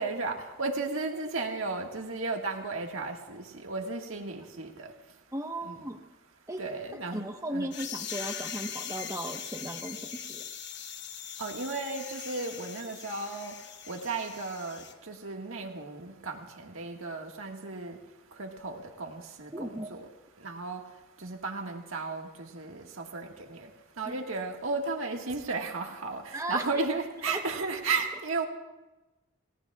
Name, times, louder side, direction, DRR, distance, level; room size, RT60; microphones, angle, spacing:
voice 1, 0.0-4.9 5.6-5.8 6.6-7.7 11.4-13.5 13.9-18.0 18.4-20.0 20.4-20.8 21.2-23.7 24.0-28.5, right 3 dB, 80° right, 2 dB, 1.8 m, -34 dB
voice 2, 5.3-6.0 6.5-6.6 6.9-10.5 19.5-20.0 24.0-24.2 26.3-26.9 27.3-27.4, right 1 dB, 15° right, 4 dB, 1.1 m, -36 dB
sound 1, 7.7-14.9, left 8 dB, 55° left, 1.1 m, -41 dB
29.0 x 18.0 x 2.4 m, 1.1 s
head